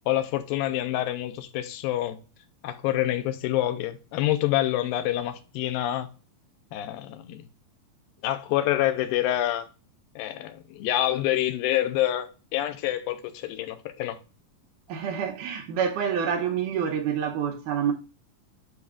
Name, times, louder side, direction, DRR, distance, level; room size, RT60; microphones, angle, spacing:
voice 1, 0.1-2.2 2.6-6.1 6.7-7.4 8.2-9.7 10.2-14.2, left 13 dB, 80° left, 2.4 m, -27 dB
voice 2, 14.9-17.9, right 7 dB, 75° right, 2.1 m, -27 dB
10.5 x 4.0 x 2.4 m
omnidirectional pair, 4.2 m